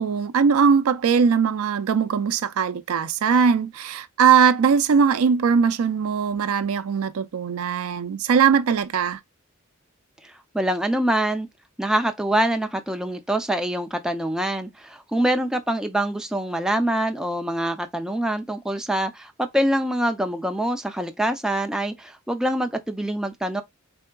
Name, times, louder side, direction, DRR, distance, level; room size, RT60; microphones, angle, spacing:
voice 1, 0.0-9.2, right 6 dB, 80° right, 0.4 m, -20 dB
voice 2, 10.2-11.5 11.8-23.6, right 1 dB, 5° right, 0.3 m, -25 dB
3.7 x 3.4 x 2.2 m
head